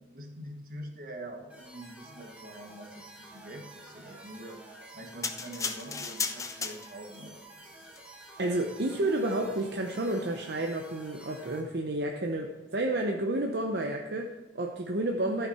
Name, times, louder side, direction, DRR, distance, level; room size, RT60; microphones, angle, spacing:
voice 1, 0.1-4.6 4.9-7.7, right 1 dB, 50° right, 3 dB, 1.4 m, -45 dB
sound 1, 1.5-11.6, right 2 dB, 5° right, 1.6 m, -50 dB
sound 2, 5.2-7.2 7.8-8.0, left 5 dB, 15° left, 0.5 m, -34 dB
voice 2, 8.4-15.5, right 1 dB, 65° right, 2 dB, 0.7 m, -30 dB
13.5 x 5.8 x 4.3 m, 1.2 s
head